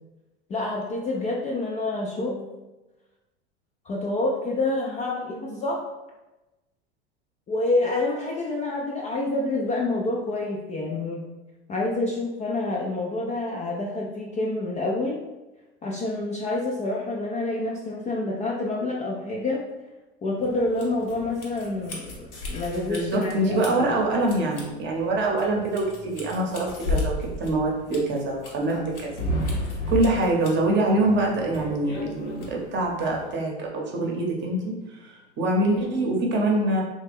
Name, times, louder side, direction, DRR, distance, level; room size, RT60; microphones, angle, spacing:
voice 1, 0.5-2.5 3.8-5.8 7.5-11.2 11.7-15.2 15.8-19.6 20.2-23.9, left 2 dB, 20° left, -3 dB, 0.3 m, -28 dB
sound 1, 20.4-33.3, left 1 dB, 85° left, 1.0 m, -34 dB
voice 2, 22.8-29.1 29.9-36.8, right 2 dB, 35° right, -1 dB, 0.8 m, -25 dB
2.8 x 2.2 x 3.4 m, 1.1 s
hypercardioid pair, 95°, 34 cm